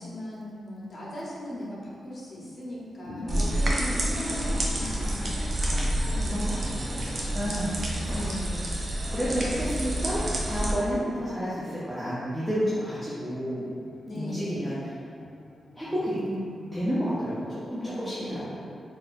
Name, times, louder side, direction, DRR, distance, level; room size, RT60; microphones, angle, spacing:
voice 1, 0.0-5.3 6.0-6.5 8.1-8.8 14.1-14.6 16.1-16.6 17.8-18.5, left 1 dB, 40° left, -7 dB, 0.9 m, -38 dB
sound 1, 2.7-17.4, left 1 dB, 65° left, 0.5 m, -45 dB
voice 2, 3.2-3.7 5.6-5.9 6.2-8.2 9.1-10.2 10.5-13.7 14.2-14.8 15.8-16.3 16.7-18.7, equal, 5° right, -11 dB, 0.6 m, -31 dB
sound 2, 3.3-10.7, right 1 dB, 45° right, 0.5 m, -28 dB
4.0 x 2.4 x 2.5 m, 2.4 s
wide cardioid pair, 120°, 0 cm